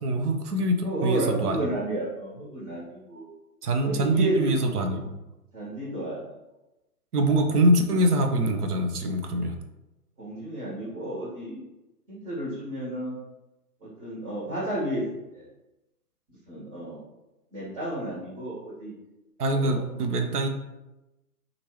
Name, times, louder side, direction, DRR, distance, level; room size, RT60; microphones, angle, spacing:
voice 1, 0.0-1.7 3.6-5.1 7.1-9.5 19.4-20.5, right 1 dB, 75° right, 5 dB, 0.7 m, -24 dB
voice 2, 0.8-3.2 3.8-4.5 5.5-6.2 10.2-11.6 12.1-13.2 13.8-15.0 15.3-15.4 16.5-17.0 17.5-18.9 19.5-19.8, right 1 dB, 35° right, -8 dB, 1.5 m, -31 dB
2.9 x 2.6 x 2.9 m, 0.98 s
hypercardioid pair, 135°, 46 cm